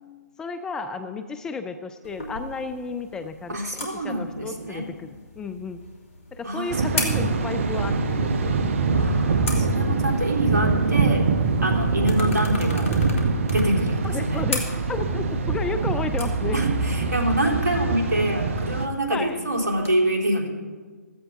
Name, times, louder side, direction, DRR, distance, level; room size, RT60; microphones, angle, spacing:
voice 1, 0.4-5.8 6.3-8.4 14.0-16.6 19.1-19.4, left 4 dB, 5° left, 9 dB, 0.3 m, -32 dB
sound 1, 2.0-19.9, left 2 dB, 55° left, 2.8 m, -38 dB
voice 2, 3.5-4.9 6.4-6.7 8.9-11.2 11.6-12.9 13.5-14.4 16.5-20.5, right 1 dB, 75° right, 0 dB, 3.4 m, -26 dB
Thunder, 6.7-18.9, right 4 dB, 45° right, 1.1 m, -24 dB
15.5 x 14.5 x 3.7 m, 1.5 s
figure-of-eight pair, 135°, 9 cm